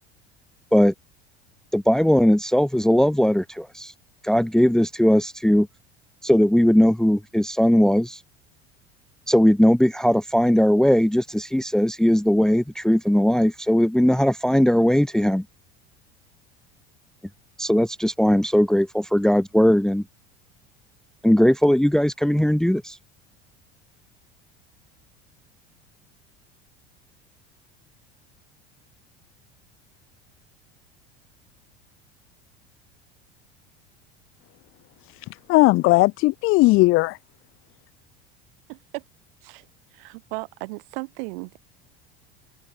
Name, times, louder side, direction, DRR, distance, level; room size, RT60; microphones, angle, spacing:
voice 1, 1.7-3.9 4.2-5.7 6.2-8.2 9.3-15.4 17.6-20.0 21.2-23.0, equal, ahead, 1.2 m, -19 dB
voice 2, 35.0-37.2, left 21 dB, 40° left, 0.8 m, -18 dB
voice 3, 38.7-39.0 39.4-41.6, right 28 dB, 55° right, 5.1 m, -36 dB
open air
figure-of-eight pair, 70°, 33 cm